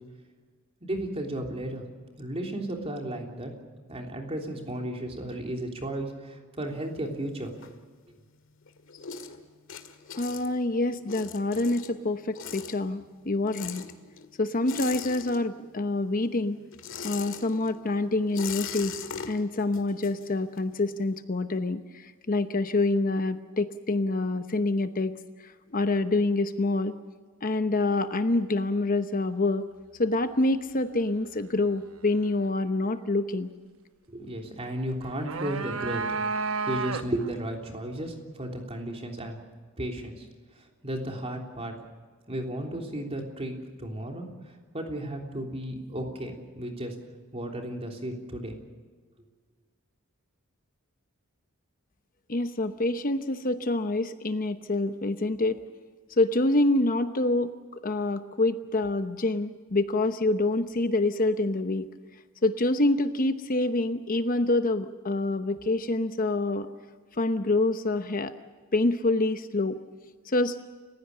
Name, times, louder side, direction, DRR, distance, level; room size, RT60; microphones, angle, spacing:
voice 1, 0.8-1.8 2.2-3.5 3.9-7.5 34.1-39.4 39.8-40.2 40.8-41.7 42.3-44.3 44.7-47.0 47.3-48.6, right 1 dB, 30° right, 2 dB, 3.4 m, -34 dB
sound 1, 6.7-8.3 8.6-15.8 16.1-20.8, left 7 dB, 65° left, 1.9 m, -41 dB
voice 2, 10.1-13.8 14.4-16.6 17.0-18.9 19.3-25.1 25.4-26.9 27.4-29.6 30.0-33.5 52.3-55.6 56.1-57.5 57.8-61.9 62.4-66.7 67.2-68.3 68.7-69.8 70.3-70.6, left 2 dB, 40° left, 9 dB, 0.9 m, -26 dB
sound 2, 35.0-37.3, right 4 dB, 75° right, 1.0 m, -31 dB
29.5 x 16.0 x 6.8 m, 1.5 s
head